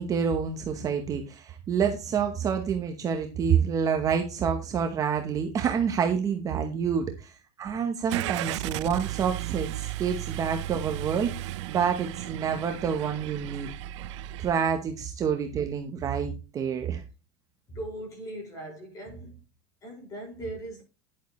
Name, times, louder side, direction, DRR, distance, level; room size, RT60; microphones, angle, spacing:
voice 1, 0.0-11.3 11.7-13.7 14.4-17.0, right 7 dB, 20° right, 1.0 m, -28 dB
Car / Engine starting, 8.1-14.5, right 15 dB, 75° right, 0.6 m, -35 dB
voice 2, 17.7-19.4 19.8-20.8, right 1 dB, 20° left, 5.3 m, -39 dB
11.0 x 9.0 x 3.1 m
supercardioid pair, 170°, 15 cm